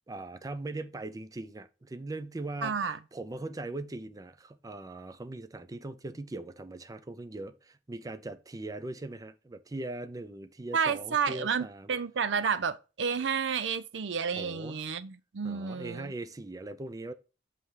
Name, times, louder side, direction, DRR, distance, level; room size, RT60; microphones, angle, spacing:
voice 1, 0.1-11.9 14.4-14.9 15.4-17.1, right 2 dB, 20° right, 0.4 m, -40 dB
voice 2, 2.6-3.0 10.7-16.1, right 6 dB, 85° right, 0.5 m, -31 dB
7.6 x 3.4 x 4.6 m
head